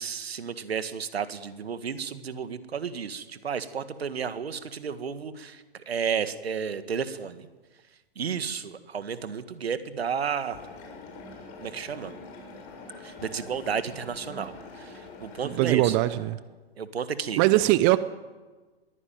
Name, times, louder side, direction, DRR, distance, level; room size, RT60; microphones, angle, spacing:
voice 1, 0.0-7.5 8.2-10.6 11.6-12.1 13.0-16.0 16.8-17.4, right 7 dB, 70° right, 12 dB, 1.9 m, -32 dB
sound 1, 10.5-16.2, left 3 dB, 40° left, 7.1 m, -44 dB
voice 2, 15.4-16.4 17.4-18.0, right 17 dB, 25° right, 16 dB, 0.6 m, -21 dB
22.0 x 15.5 x 9.4 m, 1.3 s
figure-of-eight pair, 120°, 32 cm